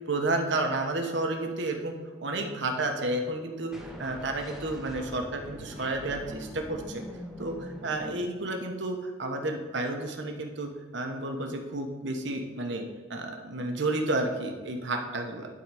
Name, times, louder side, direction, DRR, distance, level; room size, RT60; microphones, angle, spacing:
voice 1, 0.1-1.9 2.2-3.7 4.0-7.0 7.4-15.5, right 2 dB, 65° right, 4 dB, 1.0 m, -31 dB
sound 1, 3.7-8.9, equal, ahead, 0.8 m, -43 dB
11.5 x 3.9 x 4.9 m, 1.4 s
head